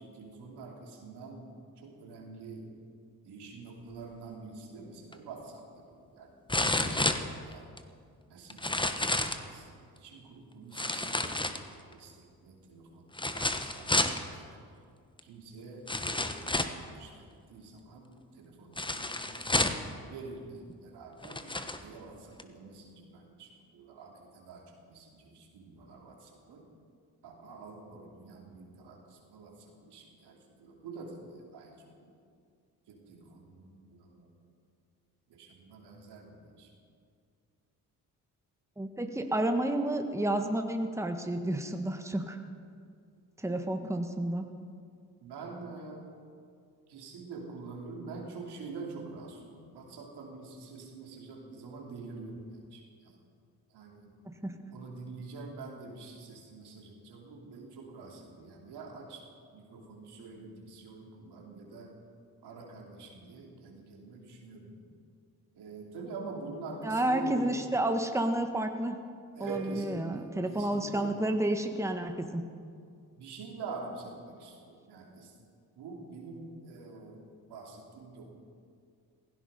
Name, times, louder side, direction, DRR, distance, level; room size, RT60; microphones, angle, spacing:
voice 1, 0.0-1.6 1.8-2.7 3.2-7.7 8.3-11.4 11.6-14.6 15.2-26.7 27.2-32.2 32.9-34.3 35.3-36.7 45.2-46.1 46.9-53.2 53.7-54.2 54.7-59.2 59.5-62.0 62.4-64.8 65.5-67.7 69.3-71.2 73.2-75.3 75.8-78.3, right 3 dB, 80° right, 1 dB, 2.8 m, -46 dB
sound 1, 5.1-5.2 6.5-7.8 8.5-9.5 10.7-11.9 13.1-14.2 15.2-15.3 15.9-16.8 18.8-19.9 20.7-20.8 21.2-21.8 22.4-22.5, left 2 dB, 10° left, 1.2 m, -30 dB
voice 2, 38.8-42.4 43.4-44.4 54.2-54.5 66.8-69.0 69.4-72.4, right 1 dB, 5° right, 5 dB, 1.5 m, -30 dB
sound 2, 69.5-71.5, right 4 dB, 55° right, 2.9 m, -44 dB
16.0 x 16.0 x 5.3 m, 2.2 s
supercardioid pair, 50°, 40 cm